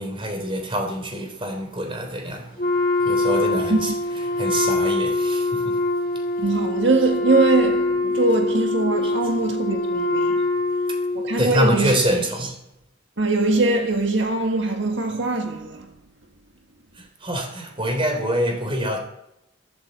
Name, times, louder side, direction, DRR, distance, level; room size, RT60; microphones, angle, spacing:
voice 1, 0.0-2.7 3.0-5.8 9.0-9.1 11.4-12.6 17.0-19.0, right 1 dB, 30° right, 3.5 m, -25 dB
Wind instrument woodwind instrument, 2.6-11.4, left 2 dB, 50° left, 2.7 m, -23 dB
voice 2, 6.4-10.4 11.2-11.9 13.2-15.9, right 2 dB, 70° right, 1.7 m, -22 dB
13.5 x 13.0 x 8.0 m
head